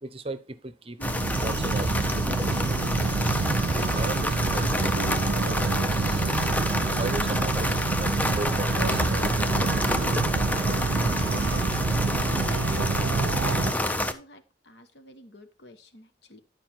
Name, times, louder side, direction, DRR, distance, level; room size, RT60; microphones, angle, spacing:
voice 1, 0.0-1.0 1.4-2.2 3.6-4.8 5.6-6.5 6.9-10.0, right 3 dB, 30° right, 14 dB, 0.7 m, -37 dB
voice 2, 1.0-1.3 11.4-11.8 12.4-12.9 13.9-16.4, equal, 65° left, 8 dB, 1.2 m, -49 dB
sound 1, 1.0-14.1, left 1 dB, 10° left, 0.6 m, -28 dB
sound 2, 1.0-13.7, right 4 dB, 65° right, 0.4 m, -28 dB
11.0 x 4.7 x 4.5 m, 0.31 s
head